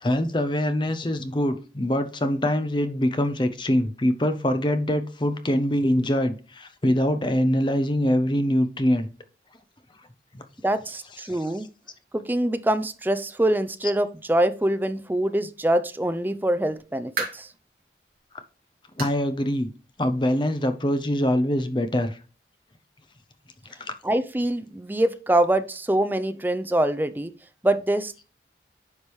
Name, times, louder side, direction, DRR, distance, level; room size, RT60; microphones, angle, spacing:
voice 1, 0.0-9.1 10.3-10.4 11.3-11.4 19.0-19.7 20.0-22.2 23.8-23.9, equal, 25° left, 0.7 m, -24 dB
voice 2, 10.6-11.7 12.1-17.5 24.0-27.3 27.6-28.2, right 1 dB, 10° right, 0.4 m, -24 dB
sound 1, 16.8-17.6 18.1-18.2 19.0-19.3 19.6-19.7 20.2-20.3 21.4-21.5, right 4 dB, 55° right, 2.7 m, -34 dB
9.6 x 5.1 x 3.1 m
head